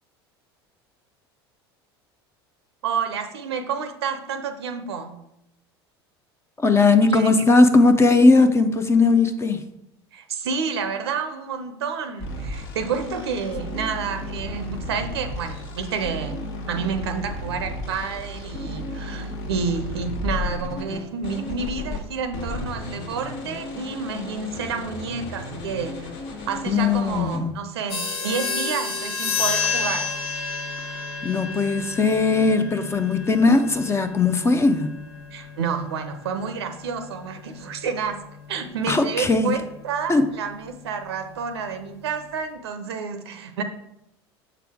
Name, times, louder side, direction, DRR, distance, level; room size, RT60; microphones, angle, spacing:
voice 1, 2.8-5.2 7.1-7.3 10.1-16.4 16.7-26.1 26.5-30.1 35.3-38.2 38.5-43.6, right 5 dB, 80° right, 8 dB, 0.6 m, -29 dB
voice 2, 6.6-9.6 26.7-27.5 31.2-35.0 38.9-39.6 40.1-40.2, left 3 dB, 20° left, 8 dB, 0.6 m, -18 dB
sound 1, 12.2-22.0 22.3-27.4, left 1 dB, 65° left, 1.3 m, -33 dB
sound 2, 27.9-38.1, left 5 dB, 85° left, 0.9 m, -31 dB
6.8 x 4.7 x 3.5 m, 0.85 s
hypercardioid pair, 75°, 13 cm